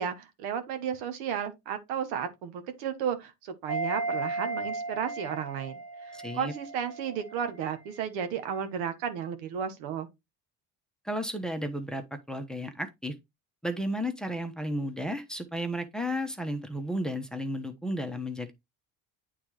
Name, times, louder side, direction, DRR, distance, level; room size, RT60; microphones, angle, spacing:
voice 1, 0.0-10.1, right 8 dB, 80° right, 1.1 m, -33 dB
sound 1, 3.7-7.6 7.9-8.0, right 2 dB, 35° right, 1.1 m, -35 dB
voice 2, 6.1-6.5 11.0-13.1 13.6-18.5, equal, ahead, 1.0 m, -33 dB
8.7 x 3.7 x 3.2 m
supercardioid pair, 70°, 43 cm